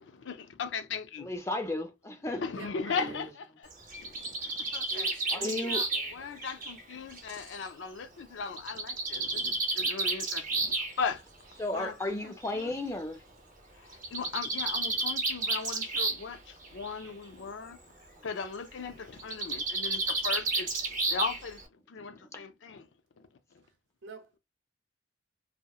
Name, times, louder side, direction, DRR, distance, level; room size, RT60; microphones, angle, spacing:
voice 1, 0.2-1.3 2.3-3.7 4.0-5.1 5.6-11.2 11.7-12.7 13.8-17.8 18.2-20.7 21.1-21.6 21.9-22.9 23.2-23.3, left 5 dB, 85° left, 0.5 m, -38 dB
voice 2, 1.2-2.4 2.9-3.0 5.3-5.8 11.6-13.2 22.1-22.3, left 2 dB, 15° left, 0.5 m, -34 dB
voice 3, 2.5-3.2 4.9-6.3 24.0-24.4, right 3 dB, 85° right, 0.8 m, -47 dB
Bird, 3.7-7.5 8.6-10.9 12.0-12.1 12.4-12.5 12.8-12.9 13.9-16.3 16.6-17.1 19.2-21.6, right 3 dB, 45° right, 0.6 m, -31 dB
2.8 x 2.0 x 2.3 m
head